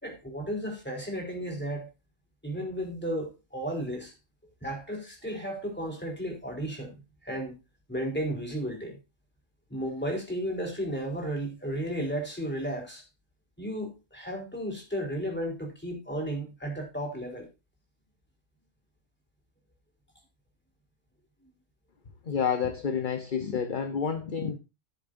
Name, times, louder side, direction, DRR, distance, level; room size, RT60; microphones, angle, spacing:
voice 1, 0.0-1.9 2.4-4.1 4.6-7.6 7.9-9.0 9.7-13.0 13.6-17.5, equal, 10° left, 3.9 m, -34 dB
voice 2, 22.3-24.6, left 6 dB, 45° left, 1.0 m, -29 dB
15.5 x 7.3 x 2.6 m
omnidirectional pair, 1.3 m